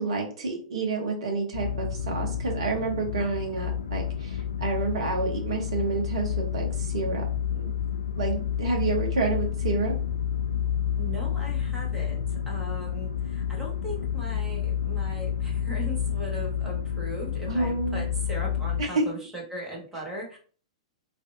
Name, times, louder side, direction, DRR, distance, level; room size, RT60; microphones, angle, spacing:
voice 1, 0.0-7.7 8.2-9.9 17.5-18.1 18.8-19.0, right 3 dB, 60° right, 3 dB, 0.9 m, -29 dB
sound 1, 1.5-18.8, left 8 dB, 75° left, 0.3 m, -30 dB
voice 2, 11.0-20.4, right 1 dB, 10° right, -3 dB, 1.3 m, -38 dB
3.3 x 2.5 x 2.5 m, 0.41 s
figure-of-eight pair, 105°, 3 cm